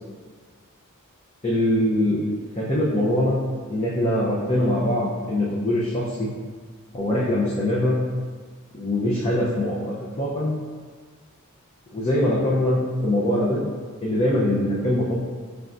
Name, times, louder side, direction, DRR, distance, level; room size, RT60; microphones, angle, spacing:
voice 1, 1.4-2.2 2.6-3.3 3.7-6.3 6.9-8.0 8.7-9.8 10.2-10.5 11.9-13.6 14.0-15.1, left 1 dB, 30° left, -7 dB, 0.6 m, -22 dB
5.3 x 3.4 x 2.5 m, 1.5 s
head